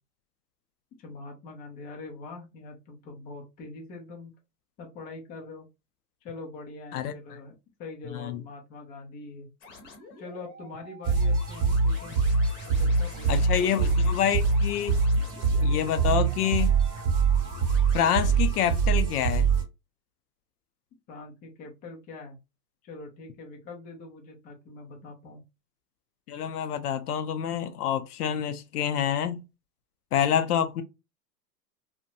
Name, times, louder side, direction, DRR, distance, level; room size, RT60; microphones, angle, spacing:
voice 1, 1.0-4.3 4.8-5.7 6.2-7.5 7.8-9.5 10.2-12.2 12.7-14.1 21.1-22.4 22.8-25.4, left 3 dB, 20° left, 0.5 m, -43 dB
sound 1, 9.6-18.4, left 2 dB, 40° left, 0.9 m, -48 dB
sound 2, 11.0-19.6, right 4 dB, 30° right, 1.0 m, -24 dB
voice 2, 13.3-15.0 15.6-16.7 17.9-19.5 26.3-29.4 30.1-30.8, left 9 dB, 65° left, 0.5 m, -27 dB
2.5 x 2.1 x 2.6 m
hypercardioid pair, 120°, 49 cm